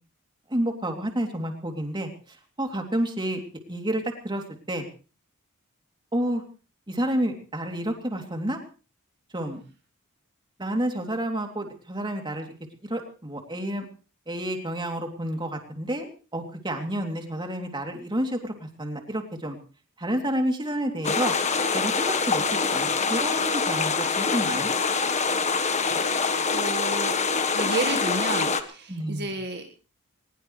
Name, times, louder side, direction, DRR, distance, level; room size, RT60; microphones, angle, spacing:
voice 1, 0.5-3.4 3.7-4.8 6.1-6.4 6.9-8.6 9.3-9.6 10.6-12.5 12.8-13.9 14.3-19.6 20.0-21.3 21.7-22.4 22.7-24.7 28.9-29.3, right 1 dB, 20° right, 3 dB, 3.0 m, -30 dB
sound 1, 21.0-28.6, left 5 dB, 30° left, 1.4 m, -25 dB
voice 2, 25.9-27.2 27.5-29.7, right 3 dB, 50° right, 4 dB, 1.7 m, -32 dB
21.0 x 20.5 x 3.3 m, 0.37 s
head